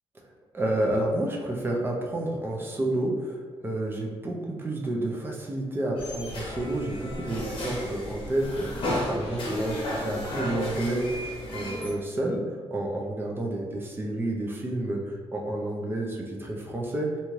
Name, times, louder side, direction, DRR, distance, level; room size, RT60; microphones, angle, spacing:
voice 1, 0.5-3.3 3.6-11.3 11.5-12.4 12.7-17.1, right 1 dB, 20° right, -1 dB, 0.5 m, -30 dB
sound 1, 6.0-11.9, left 1 dB, 60° left, 0.9 m, -33 dB
2.7 x 2.3 x 3.1 m, 1.5 s
cardioid pair, 110°, 10 cm